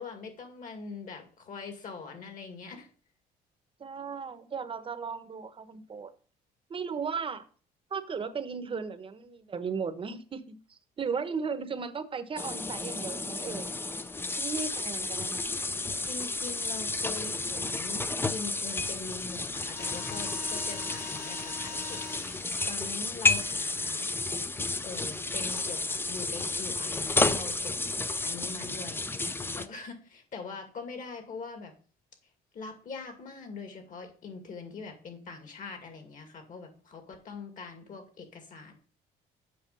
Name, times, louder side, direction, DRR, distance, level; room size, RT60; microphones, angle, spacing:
voice 1, 0.0-2.9 16.1-18.0 18.3-22.0 22.7-24.1 24.8-27.8 28.2-31.7 32.5-38.7, left 4 dB, 50° left, 2.3 m, -42 dB
voice 2, 3.8-6.1 6.7-7.4 7.9-13.7 14.4-15.4, right 5 dB, 30° right, 1.0 m, -36 dB
sound 1, 12.4-29.7, left 3 dB, 15° left, 0.5 m, -32 dB
sound 2, 19.7-24.3 25.4-26.8, left 4 dB, 65° left, 2.4 m, -44 dB
7.8 x 5.7 x 5.4 m
cardioid pair, 110°, 17 cm